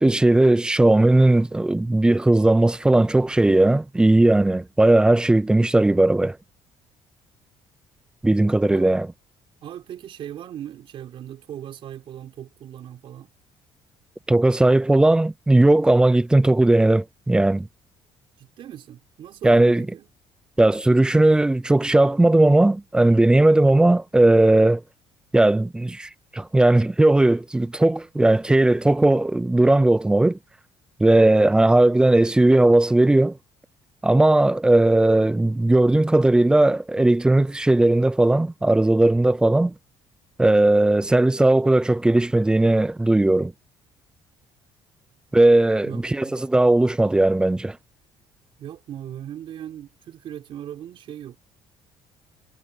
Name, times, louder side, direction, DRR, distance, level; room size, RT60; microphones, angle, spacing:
voice 1, 0.0-6.4 8.2-9.1 14.3-17.7 19.4-19.9 20.6-24.8 25.3-30.4 31.0-33.4 34.0-39.7 40.4-43.5 45.3-47.8, right 2 dB, 10° right, 0.4 m, -17 dB
voice 2, 9.6-13.3 18.4-20.1 45.8-46.4 48.6-51.4, right 10 dB, 55° right, 3.8 m, -38 dB
cardioid pair, 125°, 10 cm